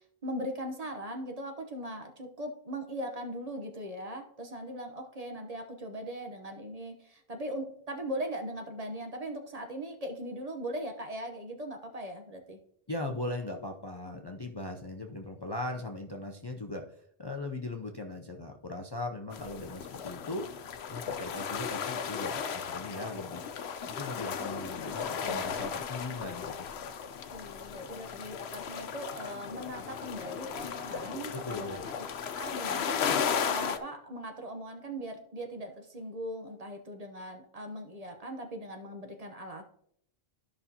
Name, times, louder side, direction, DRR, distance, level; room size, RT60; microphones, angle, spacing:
voice 1, 0.0-12.6 27.3-32.0 32.3-39.6, equal, 40° right, 4 dB, 0.9 m, -39 dB
voice 2, 12.9-20.5 20.9-26.9 31.3-31.9, left 2 dB, 30° left, 2 dB, 0.5 m, -39 dB
sound 1, 19.3-33.8, left 7 dB, 85° left, 0.9 m, -35 dB
13.0 x 5.5 x 2.8 m, 0.68 s
omnidirectional pair, 1.1 m